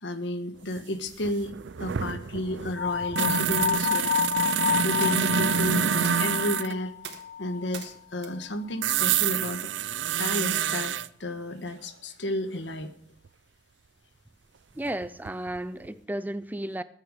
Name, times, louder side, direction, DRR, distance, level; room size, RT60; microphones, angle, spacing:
voice 1, 0.0-1.5 1.8-4.1 4.8-6.9 7.4-9.7 10.2-10.9 11.2-12.9, left 1 dB, 80° left, 8 dB, 1.5 m, -32 dB
sound 1, 0.8-0.9 1.1-6.7 8.8-11.1 13.3-13.4 14.9-15.6 15.8-15.9, right 8 dB, 80° right, 0.5 m, -27 dB
sound 2, 2.8-7.9, left 7 dB, 45° left, 0.6 m, -29 dB
sound 3, 3.6-9.7, right 7 dB, 65° right, 2.1 m, -47 dB
voice 2, 14.8-16.8, right 1 dB, 10° right, 14 dB, 0.4 m, -33 dB
20.0 x 9.2 x 5.0 m, 0.63 s
head